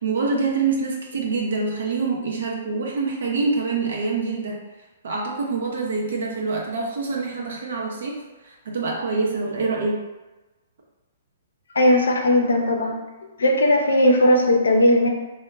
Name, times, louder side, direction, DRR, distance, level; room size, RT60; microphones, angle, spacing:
voice 1, 0.0-4.6 5.0-8.2 8.4-10.0, right 4 dB, 70° right, -1 dB, 0.7 m, -25 dB
voice 2, 11.7-13.0 13.4-15.1, left 1 dB, 80° left, 1 dB, 0.5 m, -17 dB
3.6 x 2.2 x 2.3 m, 1.1 s
hypercardioid pair, 130°, 0 cm